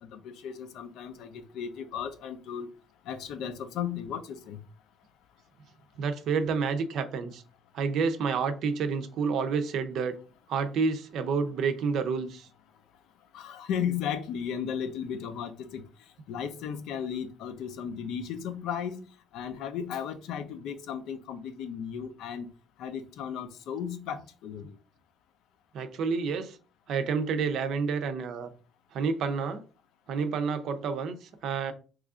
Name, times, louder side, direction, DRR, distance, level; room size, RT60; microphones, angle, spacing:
voice 1, 0.0-2.7 3.1-4.6 13.3-15.8 16.3-19.0 19.3-22.5 22.8-24.8, left 8 dB, 80° left, 0.5 m, -35 dB
voice 2, 6.0-7.4 7.7-10.2 10.5-12.5 25.7-26.6 26.9-28.5 28.9-29.6 30.1-31.7, right 5 dB, 65° right, 0.5 m, -29 dB
3.1 x 2.4 x 3.6 m
cardioid pair, 145°, 0 cm